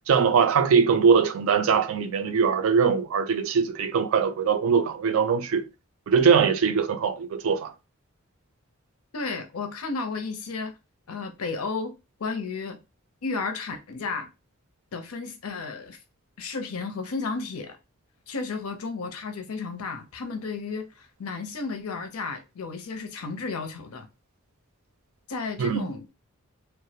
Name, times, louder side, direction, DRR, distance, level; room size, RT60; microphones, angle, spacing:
voice 1, 0.1-5.6 6.1-7.7 25.6-25.8, right 6 dB, 70° right, 0.3 m, -21 dB
voice 2, 9.1-10.7 11.1-11.9 12.2-12.8 13.2-14.3 14.9-16.0 16.4-17.8 18.3-24.1 25.3-26.1, left 4 dB, 80° left, 0.5 m, -33 dB
2.3 x 2.0 x 2.7 m
head